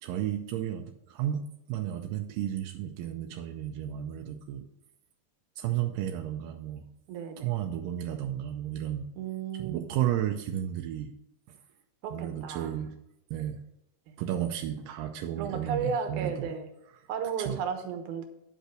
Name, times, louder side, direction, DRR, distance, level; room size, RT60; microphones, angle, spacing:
voice 1, 0.0-1.4 1.7-4.6 5.6-6.9 7.4-9.1 9.5-11.1 11.5-11.6 12.1-12.9 13.3-13.6 14.2-16.5 17.4-17.6, right 11 dB, 85° right, 4 dB, 2.3 m, -33 dB
voice 2, 7.1-7.5 9.2-9.9 12.0-12.7 14.1-14.2 15.4-16.7 17.1-18.2, right 6 dB, 70° right, 5 dB, 2.5 m, -34 dB
9.9 x 5.4 x 6.3 m, 0.80 s
omnidirectional pair, 4.0 m